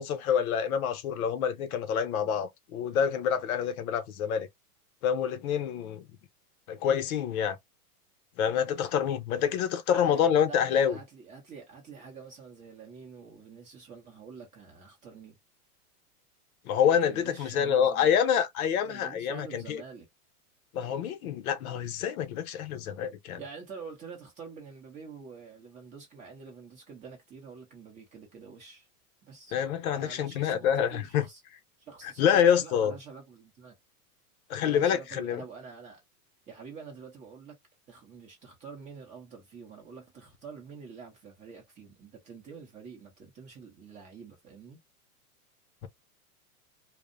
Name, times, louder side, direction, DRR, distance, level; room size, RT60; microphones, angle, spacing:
voice 1, 0.0-4.5 5.0-6.1 6.7-7.6 8.4-11.0 16.7-19.8 20.7-23.4 29.5-31.3 32.2-32.9 34.5-35.4, left 8 dB, 65° left, 0.7 m, -27 dB
voice 2, 9.9-15.4 16.9-18.2 18.8-20.1 23.4-28.9 29.2-29.6 29.9-31.4 31.8-33.8 34.6-36.0 36.5-37.6 37.9-44.8, right 5 dB, 15° right, 0.5 m, -47 dB
2.6 x 2.0 x 2.5 m
supercardioid pair, 155°, 46 cm